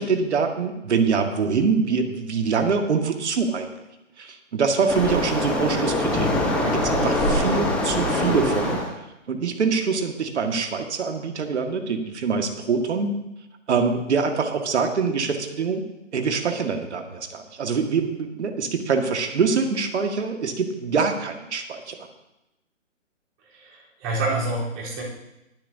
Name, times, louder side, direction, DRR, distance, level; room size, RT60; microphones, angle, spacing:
voice 1, 0.0-3.7 4.2-8.8 9.3-13.1 13.7-15.9 16.1-22.0, right 5 dB, 60° right, 5 dB, 1.9 m, -24 dB
Waves surf, 4.9-8.9, left 1 dB, 5° left, 1.0 m, -23 dB
voice 2, 23.5-25.0, right 2 dB, 25° right, -5 dB, 3.8 m, -27 dB
22.5 x 7.6 x 2.8 m, 0.91 s
hypercardioid pair, 150°, 39 cm